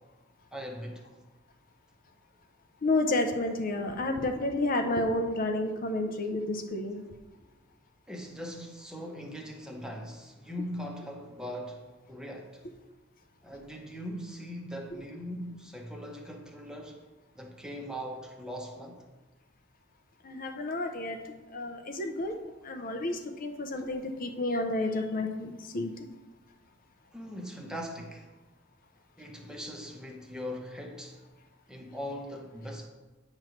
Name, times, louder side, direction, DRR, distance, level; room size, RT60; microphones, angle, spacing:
voice 1, 0.5-1.1 8.1-12.6 13.4-17.0 17.3-19.0 27.1-28.3 29.2-31.2 31.7-32.9, equal, 5° right, 0.8 m, -40 dB
voice 2, 2.8-7.0 14.9-15.0 20.2-21.2 21.5-22.3 22.6-25.9, left 2 dB, 45° left, 0.6 m, -30 dB
9.0 x 3.1 x 6.4 m
head